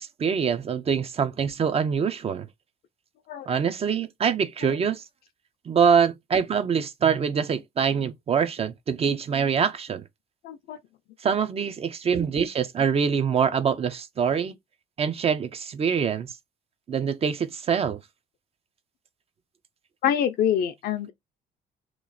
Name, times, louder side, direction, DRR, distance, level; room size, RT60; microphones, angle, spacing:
voice 1, 0.0-2.5 3.5-5.0 5.7-10.0 11.2-14.5 15.0-16.3 16.9-18.0, right 7 dB, 35° right, 0.6 m, -24 dB
voice 2, 10.4-10.8 20.0-21.1, left 9 dB, 65° left, 0.6 m, -25 dB
3.0 x 2.4 x 3.9 m
cardioid pair, 110°, 17 cm